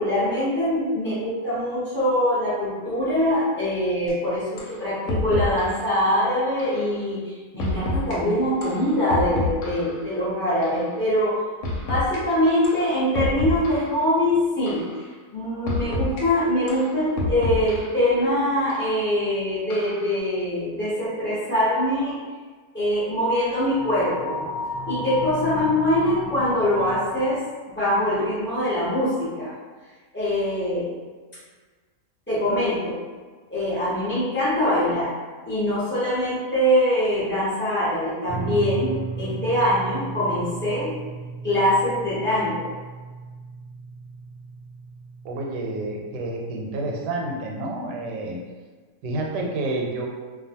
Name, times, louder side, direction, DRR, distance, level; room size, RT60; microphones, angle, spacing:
voice 1, 0.0-11.4 11.9-14.8 15.3-22.2 22.7-24.4 24.9-27.4 27.7-29.5 30.1-30.9 32.3-33.0 33.5-35.1 35.5-38.9 39.2-40.9 41.4-42.7, left 1 dB, 15° left, -12 dB, 0.4 m, -23 dB
sound 1, 4.1-4.2 4.6-4.8 5.1-5.8 6.6-6.8 7.6-8.2 8.6-10.0 10.6-10.8 11.6-12.2 12.6-12.8 13.1-14.0 14.7-14.9 15.7-16.2 16.7-18.0 18.7-18.9 19.7-20.1, left 2 dB, 75° left, 1.0 m, -28 dB
sound 2, 23.5-27.5, left 2 dB, 90° left, 1.2 m, -33 dB
sound 3, 38.3-47.2, right 4 dB, 50° left, 0.7 m, -36 dB
voice 2, 45.2-48.4 49.0-50.1, right 2 dB, 85° right, 0 dB, 1.2 m, -29 dB
2.5 x 2.3 x 2.7 m, 1.4 s
omnidirectional pair, 1.7 m